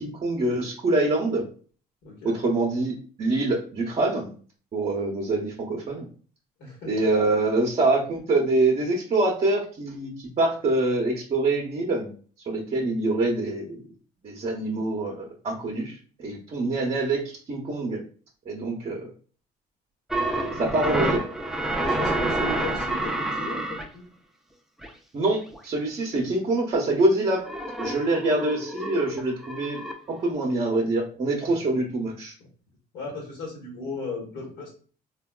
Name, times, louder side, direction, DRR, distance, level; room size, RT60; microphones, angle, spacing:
voice 1, 0.0-1.5 2.2-4.3 4.7-6.1 6.9-12.1 12.5-13.8 14.2-17.2 17.5-18.0 18.5-19.1 20.6-21.2 25.1-27.4 27.8-29.8 30.1-32.3, right 2 dB, 35° right, -2 dB, 0.7 m, -25 dB
voice 2, 2.0-2.4 6.6-6.9 20.3-20.8 21.8-24.0 31.5-31.8 32.9-34.7, left 2 dB, 85° left, -3 dB, 1.1 m, -36 dB
sound 1, 20.1-23.9 24.8-24.9 25.5-25.6 27.5-29.9, right 1 dB, ahead, 0.4 m, -28 dB
3.4 x 2.2 x 2.2 m, 0.41 s
cardioid pair, 110°, 17 cm